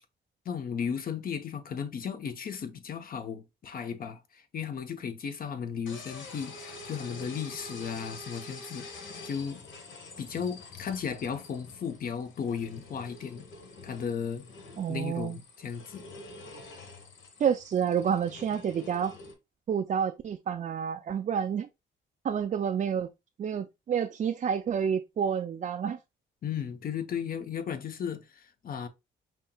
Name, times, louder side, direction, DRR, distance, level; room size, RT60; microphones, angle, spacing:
voice 1, 0.4-9.0 9.2-9.6 10.2-13.4 13.8-14.5 14.9-16.0 26.4-28.9, left 7 dB, 50° left, 0.8 m, -35 dB
sound 1, 5.9-19.3, left 3 dB, 80° left, 1.1 m, -46 dB
voice 2, 14.8-15.4 17.4-19.2 19.7-21.7 22.2-23.1 23.4-26.0, right 8 dB, 40° right, 0.4 m, -29 dB
5.5 x 2.8 x 2.3 m
cardioid pair, 90°, 20 cm